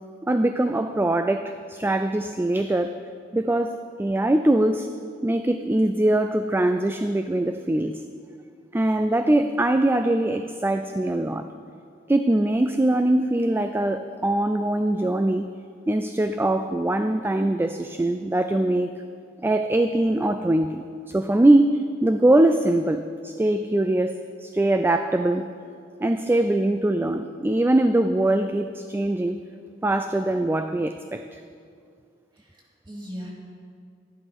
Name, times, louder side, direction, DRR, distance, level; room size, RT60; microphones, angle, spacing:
voice 1, 0.3-2.9 3.3-4.9 5.2-8.0 8.7-11.5 12.1-15.5 15.9-18.9 19.4-25.5 26.0-29.4 29.8-31.4, right 1 dB, 10° right, 8 dB, 0.3 m, -22 dB
voice 2, 32.3-33.3, equal, 30° right, -4 dB, 2.7 m, -39 dB
12.0 x 11.0 x 5.4 m, 2.3 s
head